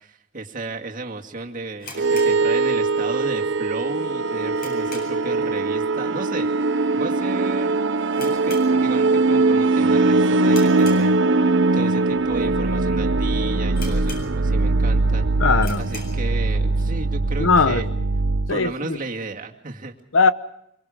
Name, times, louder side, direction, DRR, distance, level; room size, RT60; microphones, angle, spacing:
voice 1, 0.0-6.5 6.9-7.8 8.2-11.5 11.7-15.3 15.8-17.9 18.5-20.0, right 3 dB, 45° right, 2 dB, 2.2 m, -33 dB
Light pull string, 1.8-3.1 3.4-3.5 4.0-5.4 5.7-6.0 6.2-6.3 7.0-7.3 7.6-7.7 8.1-9.3 9.6-9.9 10.4-11.6 12.1-12.2 12.8-12.9 13.2-13.3 13.7-14.7 15.1-15.2 15.5-16.3, left 3 dB, 50° left, 7.9 m, -40 dB
sound 1, 2.0-18.5, right 3 dB, 65° right, 0.8 m, -21 dB
voice 2, 15.4-15.9 17.4-17.8 18.5-19.0 20.1-20.3, left 4 dB, 80° left, 13 dB, 1.0 m, -19 dB
25.0 x 24.5 x 5.1 m, 0.77 s
head